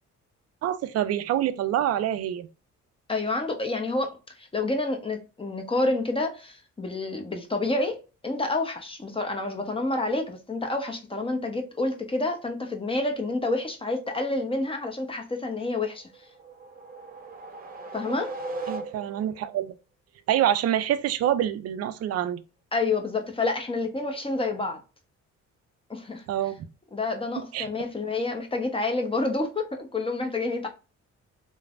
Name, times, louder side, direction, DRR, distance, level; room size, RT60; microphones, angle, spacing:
voice 1, 0.6-2.5 18.7-19.7 20.3-22.4 26.3-26.7 27.5-27.7, right 11 dB, 55° right, 0.4 m, -26 dB
voice 2, 3.1-16.3 17.9-18.3 22.7-24.8 25.9-26.2 26.9-30.7, left 2 dB, 20° left, 0.7 m, -28 dB
sound 1, 16.1-19.4, right 3 dB, 30° right, 0.8 m, -38 dB
3.2 x 2.1 x 2.4 m
cardioid pair, 90°, 30 cm